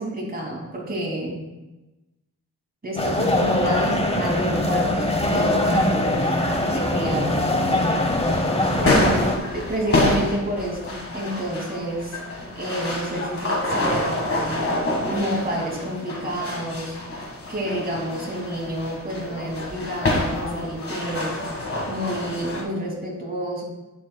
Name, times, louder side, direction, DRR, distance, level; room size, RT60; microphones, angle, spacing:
voice 1, 0.0-1.5 2.8-6.3 6.7-7.6 8.8-9.3 9.5-12.2 12.5-14.7 15.1-17.0 17.5-21.4 21.9-23.6, right 1 dB, 25° right, -2 dB, 2.5 m, -29 dB
sound 1, 3.0-9.4, left 1 dB, 20° left, 0.9 m, -22 dB
sound 2, 7.6-22.6, left 1 dB, 40° left, 1.7 m, -27 dB
10.5 x 8.9 x 2.3 m, 1.1 s
wide cardioid pair, 115°, 33 cm